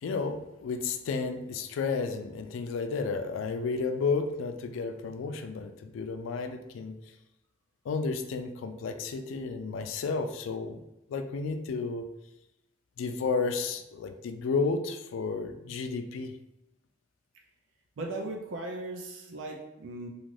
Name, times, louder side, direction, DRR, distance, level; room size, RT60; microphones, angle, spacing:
voice 1, 0.0-7.0 7.9-10.8 11.1-12.1 13.0-16.3, left 4 dB, 85° left, 8 dB, 0.3 m, -32 dB
voice 2, 18.0-20.1, right 2 dB, 75° right, 0 dB, 0.4 m, -37 dB
2.5 x 2.4 x 3.1 m, 0.91 s
head